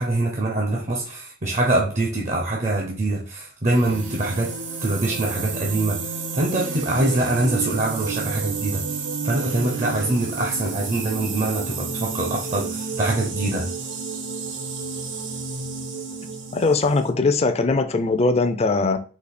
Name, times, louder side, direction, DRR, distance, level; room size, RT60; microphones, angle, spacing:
voice 1, 0.0-4.5 4.8-8.8 9.2-13.7, right 2 dB, 40° right, 0.6 m, -24 dB
sound 1, 3.7-17.1, right 4 dB, 75° right, 0.9 m, -31 dB
voice 2, 16.5-19.0, left 3 dB, 35° left, 0.4 m, -20 dB
4.1 x 2.8 x 4.1 m
head